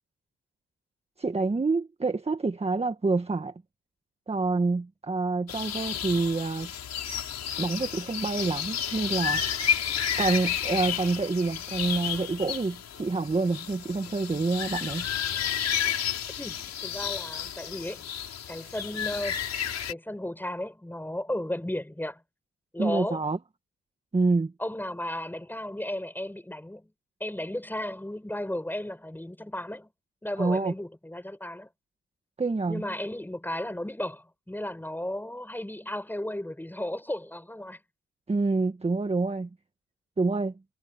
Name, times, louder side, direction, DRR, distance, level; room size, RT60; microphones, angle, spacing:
voice 1, 1.2-3.5 4.3-6.7 7.6-9.4 10.2-15.1 22.8-23.4 24.1-24.5 30.4-30.7 32.4-32.8 38.3-39.5 40.2-40.5, right 3 dB, 20° right, 1.6 m, -27 dB
sound 1, 5.5-19.9, left 8 dB, 60° left, 6.6 m, -31 dB
voice 2, 16.4-18.1 18.5-19.4 19.9-22.2 22.7-23.3 24.6-26.9 27.2-29.9 30.2-31.7 32.7-37.8, left 1 dB, 5° left, 7.0 m, -34 dB
cardioid pair, 90°, 30 cm